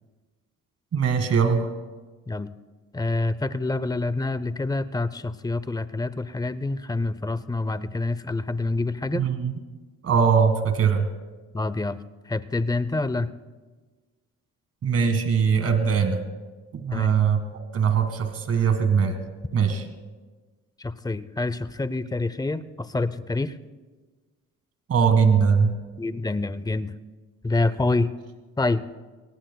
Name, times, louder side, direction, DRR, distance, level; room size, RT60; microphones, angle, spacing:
voice 1, 0.9-1.7 9.1-9.5 10.0-11.1 14.8-16.2 16.8-17.4 17.7-19.2 19.5-19.8 24.9-25.7, right 6 dB, 50° right, 7 dB, 1.8 m, -21 dB
voice 2, 2.9-9.3 11.5-12.0 12.3-13.3 16.9-17.1 20.8-23.6 26.0-26.9 27.4-28.1 28.6-28.8, left 2 dB, 15° left, 15 dB, 0.6 m, -27 dB
23.0 x 18.5 x 2.3 m, 1.3 s
cardioid pair, 90°, 30 cm